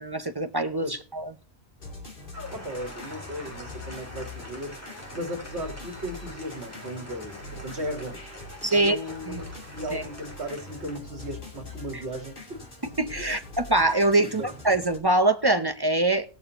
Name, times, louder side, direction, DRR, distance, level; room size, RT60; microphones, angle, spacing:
voice 1, 0.0-1.3 8.6-9.0 9.3-9.4 9.9-10.0 11.9-12.0 13.0-16.3, right 2 dB, 30° right, 0.5 m, -24 dB
sound 1, 1.8-15.0, left 2 dB, 50° left, 2.9 m, -43 dB
sound 2, 2.3-11.0, left 1 dB, 15° left, 2.2 m, -45 dB
voice 2, 2.5-4.8 5.1-8.2 8.7-12.6 13.2-13.3 14.2-14.3, equal, 65° right, 1.9 m, -36 dB
20.0 x 7.0 x 2.9 m
omnidirectional pair, 1.2 m